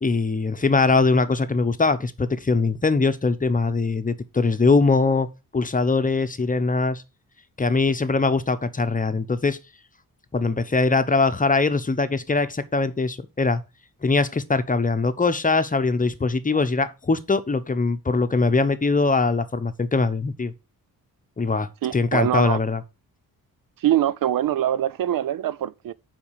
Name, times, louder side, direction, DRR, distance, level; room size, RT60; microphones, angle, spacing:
voice 1, 0.0-7.0 7.6-9.6 10.3-13.6 14.0-20.5 21.4-22.8, left 3 dB, 20° left, 0.9 m, -22 dB
voice 2, 21.8-22.6 23.8-25.9, right 11 dB, 65° right, 0.6 m, -23 dB
7.1 x 5.2 x 6.5 m
cardioid pair, 95°, 36 cm